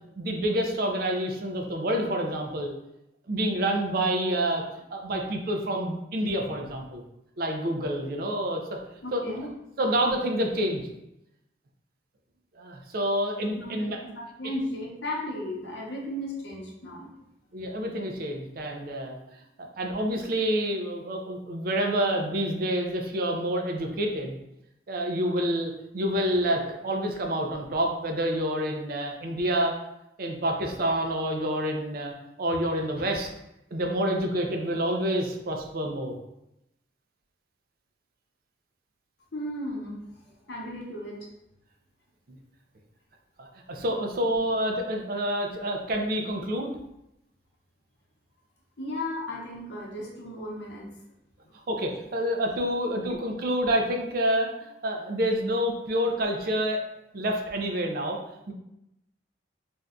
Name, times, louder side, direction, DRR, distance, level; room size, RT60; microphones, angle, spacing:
voice 1, 0.2-2.7 3.3-4.6 4.9-7.0 7.4-8.6 9.1-9.4 9.8-10.8 12.6-14.0 17.5-19.2 19.6-24.4 24.9-29.7 30.2-32.1 32.4-33.3 33.7-36.1 42.3-42.4 43.4-46.7 51.7-54.5 54.8-56.8 57.1-58.2 58.5-58.6, equal, 55° right, 2 dB, 0.4 m, -28 dB
voice 2, 9.0-9.5 13.6-17.1 39.3-41.2 48.8-50.9 51.4-51.5 52.8-53.2, left 1 dB, 70° left, -2 dB, 0.7 m, -35 dB
2.6 x 2.2 x 3.5 m, 0.85 s
head